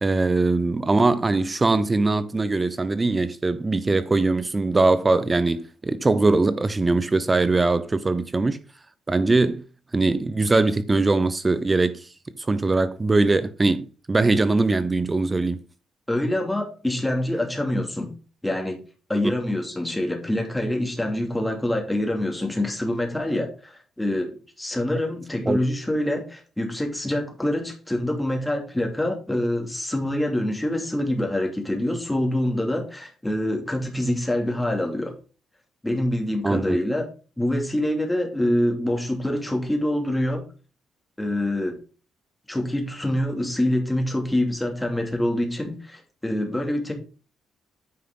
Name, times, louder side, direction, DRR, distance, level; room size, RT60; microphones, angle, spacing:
voice 1, 0.0-8.6 9.1-9.6 9.9-12.1 12.4-15.6 25.5-25.6 36.4-36.8, right 3 dB, 25° right, 0.6 m, -21 dB
voice 2, 16.1-18.1 18.4-18.8 19.1-35.2 35.8-37.1 37.4-40.5 41.2-41.8 42.5-46.9, left 1 dB, 10° left, 2.5 m, -25 dB
9.4 x 5.9 x 3.8 m
cardioid pair, 90°, 0 cm